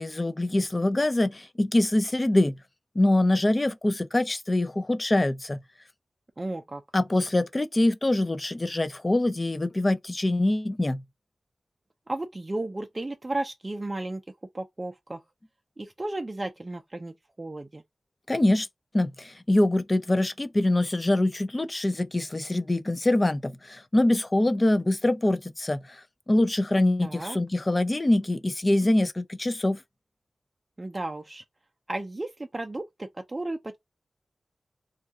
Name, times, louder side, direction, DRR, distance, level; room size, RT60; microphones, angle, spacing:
voice 1, 0.0-2.6 3.0-5.6 6.9-11.0 18.3-18.7 18.9-26.0 26.3-29.8, left 1 dB, 25° left, 0.5 m, -24 dB
voice 2, 6.4-6.8 12.1-14.2 14.5-15.2 15.8-17.8 27.0-27.4 30.8-31.4 31.9-33.8, right 2 dB, 30° right, 0.4 m, -34 dB
2.6 x 2.3 x 3.4 m
wide cardioid pair, 95°, 0 cm